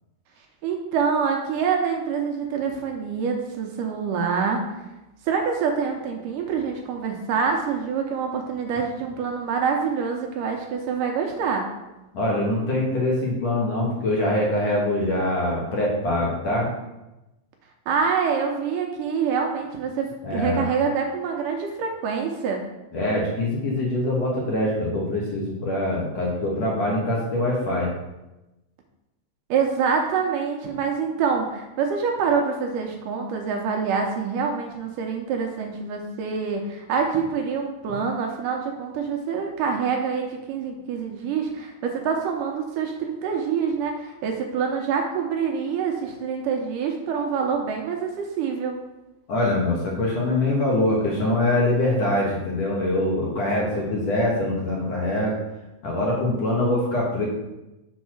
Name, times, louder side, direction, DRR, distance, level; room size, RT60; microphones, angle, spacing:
voice 1, 0.6-4.6 5.3-11.7 17.9-22.6 29.5-48.8, right 6 dB, 80° right, 2 dB, 2.2 m, -26 dB
voice 2, 12.1-16.7 20.2-20.7 22.9-27.9 49.3-55.3 55.8-57.3, left 1 dB, 60° left, -4 dB, 2.0 m, -24 dB
6.3 x 4.1 x 5.9 m, 0.98 s
omnidirectional pair, 4.1 m